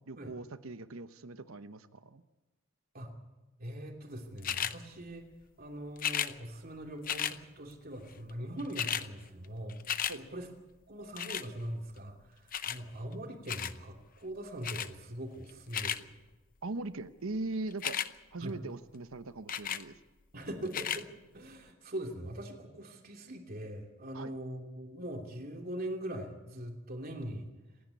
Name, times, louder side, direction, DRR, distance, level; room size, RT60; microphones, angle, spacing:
voice 1, 0.1-2.2 10.1-10.2 16.6-18.0 18.3-20.0 24.1-24.3, right 2 dB, 75° right, 11 dB, 1.0 m, -40 dB
voice 2, 3.6-5.3 5.6-9.8 10.1-10.5 10.9-16.1 18.4-18.5 20.3-21.1 21.3-27.5, right 1 dB, 45° right, 2 dB, 2.9 m, -41 dB
sound 1, 4.4-4.8 6.0-6.3 7.0-7.4 8.3-8.4 8.6-9.1 9.4-10.2 11.2-11.5 12.5-12.8 13.5-13.8 14.6-14.9 15.5-16.0 17.7-18.1 19.5-19.8 20.7-21.0 21.7-21.8, left 9 dB, 40° left, 0.7 m, -34 dB
27.5 x 10.5 x 9.6 m, 1.1 s
head